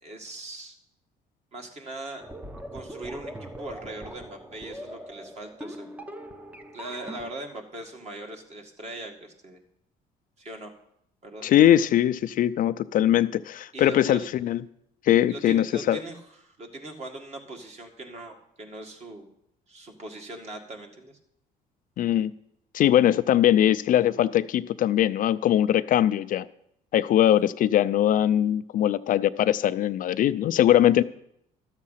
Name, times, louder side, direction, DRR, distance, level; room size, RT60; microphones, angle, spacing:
voice 1, 0.0-0.7 1.5-2.2 2.7-5.9 6.7-9.6 10.4-10.7 11.2-11.5 13.7-14.3 15.3-19.3 19.7-21.2, right 2 dB, 40° right, 3 dB, 2.0 m, -40 dB
sound 1, 2.2-7.3, right 1 dB, 10° right, 0.7 m, -41 dB
voice 2, 11.4-14.6 15.1-16.0 22.0-22.3 22.7-26.4 26.9-31.0, left 11 dB, 55° left, 13 dB, 0.4 m, -21 dB
13.0 x 7.4 x 5.7 m, 0.75 s
cardioid pair, 110°, 17 cm